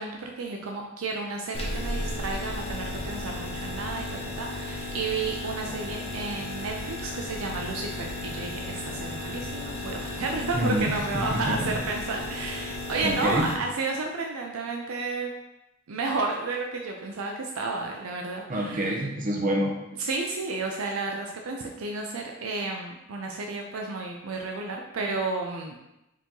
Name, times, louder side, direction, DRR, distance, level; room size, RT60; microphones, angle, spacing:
voice 1, 0.0-15.3 15.9-18.9 20.0-25.8, right 3 dB, 75° right, 1 dB, 0.5 m, -32 dB
sound 1, 1.5-13.6, left 1 dB, 30° left, 0.7 m, -34 dB
voice 2, 10.5-11.8 13.0-13.5 18.5-19.7, equal, 40° right, -1 dB, 0.8 m, -27 dB
4.7 x 2.9 x 3.8 m, 0.90 s
head